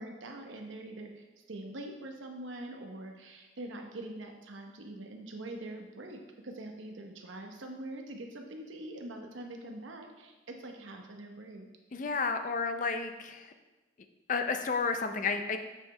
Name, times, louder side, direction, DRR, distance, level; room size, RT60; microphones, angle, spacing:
voice 1, 0.0-11.7, right 1 dB, 85° right, 3 dB, 0.9 m, -44 dB
voice 2, 11.9-13.5 14.3-15.6, left 4 dB, 40° left, 7 dB, 0.4 m, -31 dB
7.3 x 5.5 x 3.3 m, 1.1 s
head